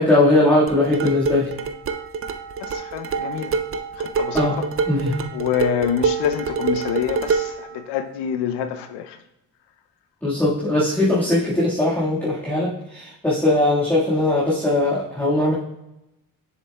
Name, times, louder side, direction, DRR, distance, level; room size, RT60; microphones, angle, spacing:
voice 1, 0.0-1.5 4.3-4.6 4.9-5.2 10.2-15.5, left 2 dB, 5° left, -8 dB, 1.6 m, -19 dB
sound 1, 0.7-7.6, right 5 dB, 35° right, 0.4 m, -26 dB
voice 2, 2.6-3.6 4.0-4.7 5.3-9.2, left 8 dB, 80° left, 8 dB, 0.6 m, -26 dB
6.9 x 6.7 x 2.2 m, 0.91 s
cardioid pair, 90°, 41 cm